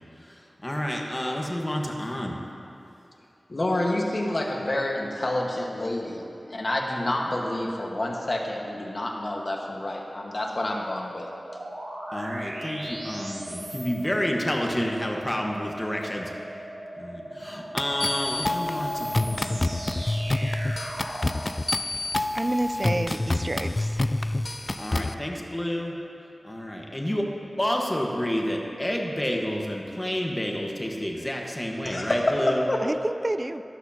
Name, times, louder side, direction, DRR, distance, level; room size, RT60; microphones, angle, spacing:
voice 1, 0.3-2.4 12.1-16.3 17.0-19.7 24.8-25.9 26.4-27.3 27.6-32.6, equal, 20° left, 0 dB, 1.3 m, -29 dB
voice 2, 3.5-6.2 6.5-11.3 31.8-32.8, left 1 dB, 55° left, 0 dB, 1.4 m, -28 dB
sound 1, 11.5-21.4, right 1 dB, 85° right, 2.8 m, -38 dB
sound 2, 17.8-25.1, left 2 dB, 35° left, 0.3 m, -27 dB
voice 3, 22.3-24.0 32.8-33.6, right 1 dB, 35° right, 11 dB, 0.4 m, -29 dB
14.5 x 11.0 x 2.9 m, 2.7 s
wide cardioid pair, 50°, 0 cm